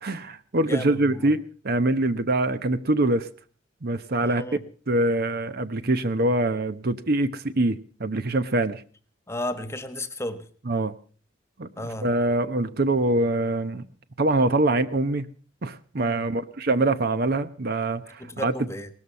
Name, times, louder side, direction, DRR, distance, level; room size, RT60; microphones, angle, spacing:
voice 1, 0.0-3.3 3.8-4.4 4.9-8.8 10.7-10.9 11.6-13.8 14.2-15.3 15.6-18.5, right 2 dB, 55° right, 12 dB, 0.9 m, -24 dB
voice 2, 0.7-1.3 4.2-4.6 9.3-10.5 11.8-12.1 16.0-16.3 18.2-18.9, left 1 dB, 15° left, 11 dB, 1.4 m, -33 dB
19.0 x 13.5 x 5.5 m, 0.42 s
head